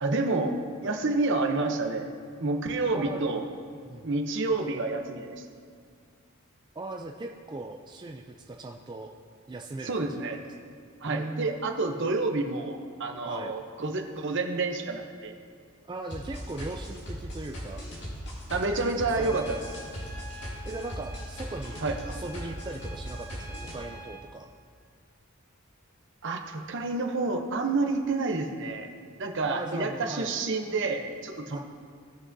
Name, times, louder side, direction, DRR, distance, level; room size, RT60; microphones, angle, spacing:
voice 1, 0.0-2.1 2.4-3.4 4.0-5.4 9.8-10.4 11.0-15.3 18.5-19.6 21.8-22.0 26.2-28.9 29.2-31.6, right 3 dB, 60° right, 4 dB, 0.8 m, -29 dB
voice 2, 6.8-9.1 9.5-10.3 11.1-11.5 13.2-13.5 15.8-17.8 19.2-19.4 20.6-24.5 29.5-30.3 31.5-31.6, right 2 dB, 20° right, 2 dB, 0.3 m, -39 dB
sound 1, 16.1-23.7, equal, 55° left, 2.2 m, -38 dB
Trumpet, 19.1-24.3, right 1 dB, 20° left, 0.9 m, -47 dB
17.0 x 5.8 x 2.7 m, 2.1 s
head